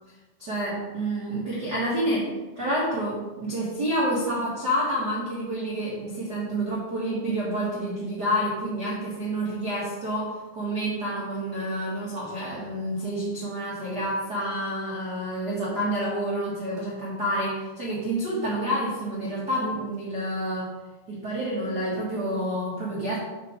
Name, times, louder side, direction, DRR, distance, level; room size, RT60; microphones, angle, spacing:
voice 1, 0.4-20.8 21.1-23.2, right 1 dB, 85° right, -7 dB, 0.9 m, -28 dB
11.5 x 4.2 x 5.0 m, 1.2 s
omnidirectional pair, 5.1 m